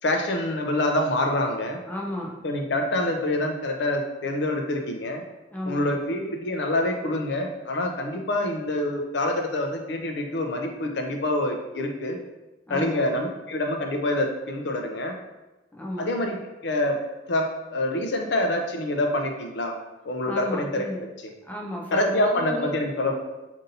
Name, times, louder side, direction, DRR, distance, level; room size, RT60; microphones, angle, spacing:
voice 1, 0.0-1.8 2.4-5.2 5.7-12.2 12.7-15.2 16.0-16.4 16.6-17.0 17.3-19.7 20.0-20.9 21.9-23.1, left 1 dB, 75° left, 3 dB, 0.5 m, -26 dB
voice 2, 1.9-2.4 5.5-5.8 12.7-13.0 15.7-16.1 20.3-21.0 21.4-22.7, left 1 dB, 10° left, -1 dB, 0.5 m, -33 dB
5.1 x 2.6 x 2.7 m, 1.1 s
head